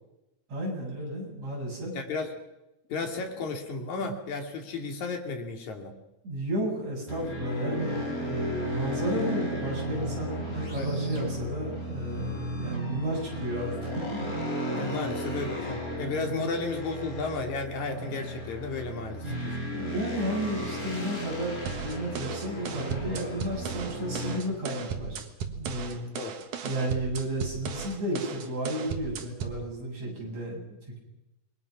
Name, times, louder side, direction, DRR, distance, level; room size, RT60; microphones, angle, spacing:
voice 1, 0.5-1.9 6.2-14.3 16.3-16.6 19.7-25.2 25.5-26.0 26.6-31.0, right 1 dB, 60° right, -2 dB, 9.0 m, -33 dB
voice 2, 1.9-2.3 2.9-6.0 10.8-10.9 14.7-19.6 26.1-26.4, left 3 dB, 70° left, 3 dB, 4.0 m, -33 dB
sound 1, 7.1-24.4, equal, 25° left, 5.7 m, -34 dB
sound 2, 21.7-29.6, right 6 dB, 75° right, 3.2 m, -37 dB
28.0 x 22.0 x 6.1 m, 0.95 s
omnidirectional pair, 3.5 m